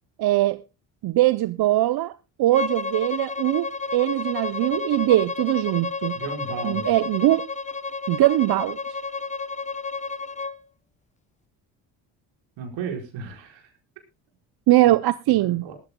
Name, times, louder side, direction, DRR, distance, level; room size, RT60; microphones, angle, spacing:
voice 1, 0.2-0.6 1.0-2.1 2.4-3.7 3.9-6.2 6.6-7.5 8.1-8.8 14.7-15.7, right 16 dB, 50° right, 0.6 m, -21 dB
Bowed string instrument, 2.5-10.6, left 4 dB, 15° left, 0.9 m, -31 dB
voice 2, 6.1-6.9 12.6-13.7 15.3-15.7, right 6 dB, 70° right, 4.7 m, -34 dB
19.5 x 14.0 x 2.2 m
hypercardioid pair, 60°, 48 cm